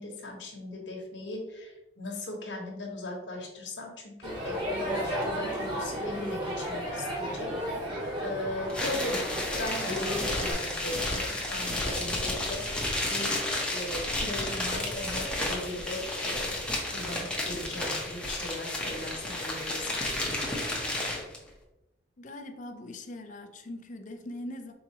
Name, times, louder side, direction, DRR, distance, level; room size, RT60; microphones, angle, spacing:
voice 1, 0.0-7.9 8.2-9.2 9.6-13.4 13.7-20.3, left 2 dB, 65° left, 0 dB, 1.2 m, -38 dB
Crowd, 4.2-10.5, equal, 25° right, 1.5 m, -33 dB
sound 1, 8.7-21.4, left 1 dB, 5° left, 0.8 m, -32 dB
voice 2, 22.2-24.7, left 1 dB, 40° left, 7 dB, 0.5 m, -41 dB
4.7 x 3.9 x 2.9 m, 0.94 s
head